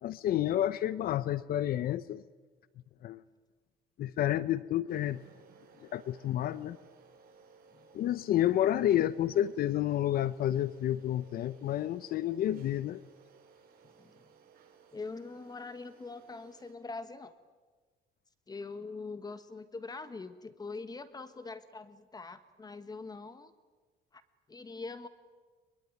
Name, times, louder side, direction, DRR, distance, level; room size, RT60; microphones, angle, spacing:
voice 1, 0.0-2.2 3.0-3.2 4.0-5.2 5.8-6.8 7.9-13.0, left 12 dB, 60° left, 16 dB, 0.7 m, -30 dB
sound 1, 4.9-16.7, right 5 dB, 60° right, 6.3 m, -59 dB
voice 2, 14.9-17.3 18.5-23.5 24.1-24.2 24.5-25.1, left 3 dB, 25° left, 11 dB, 1.4 m, -43 dB
23.0 x 23.0 x 9.5 m, 1.4 s
cardioid pair, 110°, 17 cm